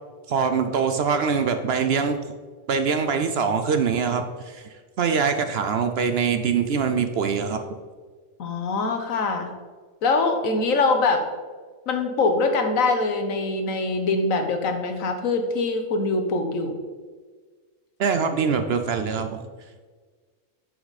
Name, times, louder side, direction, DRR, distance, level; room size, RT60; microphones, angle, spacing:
voice 1, 0.3-2.2 2.7-4.6 5.0-7.6 18.0-19.4, right 6 dB, 60° right, 8 dB, 0.7 m, -23 dB
voice 2, 8.4-9.5 10.0-11.2 11.9-16.7, left 3 dB, 80° left, 5 dB, 1.4 m, -23 dB
7.9 x 6.1 x 4.1 m, 1.5 s
omnidirectional pair, 1.4 m